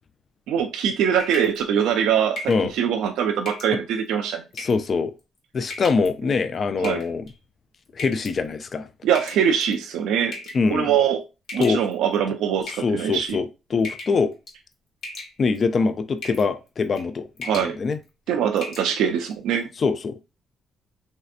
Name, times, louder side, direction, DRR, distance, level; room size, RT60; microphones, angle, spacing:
voice 1, 0.5-2.4 2.7-4.4 6.8-7.0 9.0-10.4 10.7-11.2 11.5-13.4 17.4-17.8 18.3-19.7, right 8 dB, 90° right, 0.3 m, -23 dB
sound 1, 1.2-1.6 2.4-2.7 3.5-3.7 4.5-4.9 5.7-6.1 6.8-7.3 8.0-8.3 9.2-9.7 10.3-10.7 11.5-12.1 12.6-13.3 13.8-14.2 14.5-14.7 15.0-15.6 16.2-16.5 16.8-17.1 17.4-17.7 18.1-18.2 18.6-18.9, left 2 dB, 70° left, 1.1 m, -37 dB
voice 2, 4.6-5.1 5.5-7.2 7.9-8.9 10.5-10.9 11.6-11.8 12.8-13.5 13.7-14.3 15.4-17.3 17.6-18.0 19.8-20.2, left 4 dB, 45° left, 0.3 m, -23 dB
3.1 x 2.7 x 2.4 m
cardioid pair, 90°, 0 cm